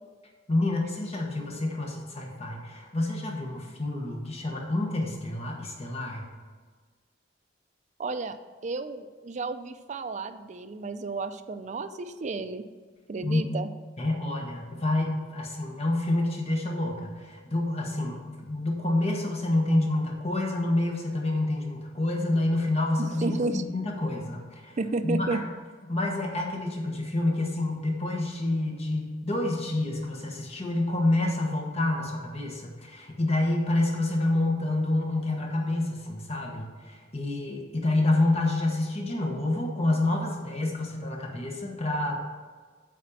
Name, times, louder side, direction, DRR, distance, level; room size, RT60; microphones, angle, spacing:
voice 1, 0.5-6.3 13.2-13.5 14.0-24.7 25.0-25.4 25.9-42.2, left 2 dB, 35° left, 1 dB, 1.2 m, -28 dB
voice 2, 8.0-8.4 8.6-12.6 13.1-13.7 23.0-23.6 24.8-25.4, right 3 dB, 40° right, 9 dB, 0.4 m, -32 dB
8.6 x 4.2 x 7.0 m, 1.5 s
head